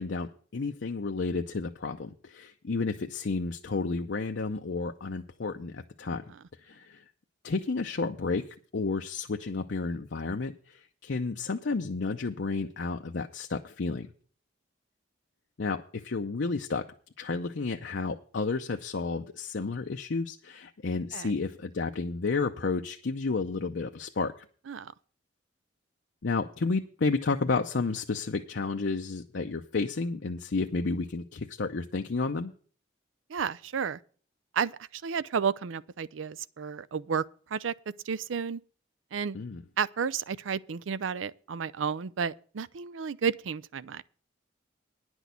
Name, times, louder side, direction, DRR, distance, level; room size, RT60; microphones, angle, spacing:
voice 1, 0.0-6.2 6.6-7.0 7.4-8.5 8.7-14.1 15.6-16.9 17.2-24.3 26.2-32.5 39.3-39.6, left 4 dB, 70° left, 0.6 m, -31 dB
voice 2, 33.3-34.0 34.5-37.2 37.5-37.7 38.0-38.6 39.1-39.4 39.8-44.0, right 6 dB, 90° right, 0.5 m, -32 dB
10.5 x 6.2 x 8.1 m
head